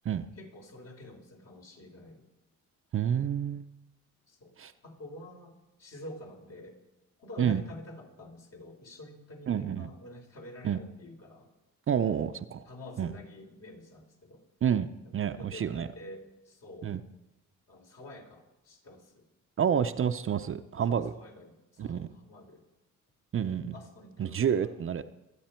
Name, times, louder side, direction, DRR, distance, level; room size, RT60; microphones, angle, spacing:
voice 1, 0.4-2.3 4.3-4.6 4.8-6.8 7.2-11.5 12.7-14.4 15.0-16.9 17.7-19.2 20.8-22.6 23.7-24.7, left 1 dB, 55° left, 1 dB, 3.9 m, -48 dB
voice 2, 2.9-3.7 4.6-4.7 7.4-7.6 9.5-9.9 10.6-10.8 11.9-12.6 13.0-13.1 14.6-15.9 16.8-17.0 19.6-21.1 21.8-22.1 23.3-23.7 24.2-25.0, right 8 dB, 45° right, 10 dB, 0.7 m, -29 dB
23.5 x 8.6 x 4.5 m, 0.99 s
cardioid pair, 90°, 30 cm